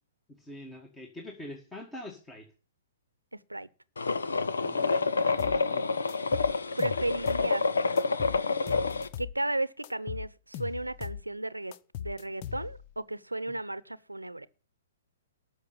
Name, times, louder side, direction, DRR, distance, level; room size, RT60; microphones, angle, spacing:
voice 1, 0.3-2.5 4.6-5.9, left 1 dB, 10° left, 1.9 m, -45 dB
voice 2, 3.3-3.7 6.8-7.7 9.2-11.7 12.0-14.5, right 2 dB, 90° right, 0.8 m, -34 dB
sound 1, 4.0-9.1, left 4 dB, 70° left, 1.0 m, -28 dB
sound 2, 5.4-5.6 6.1-7.5 8.0-9.4 9.8-11.3 11.7-12.9, left 10 dB, 35° left, 0.9 m, -39 dB
13.0 x 6.6 x 8.7 m
figure-of-eight pair, 120°, 0 cm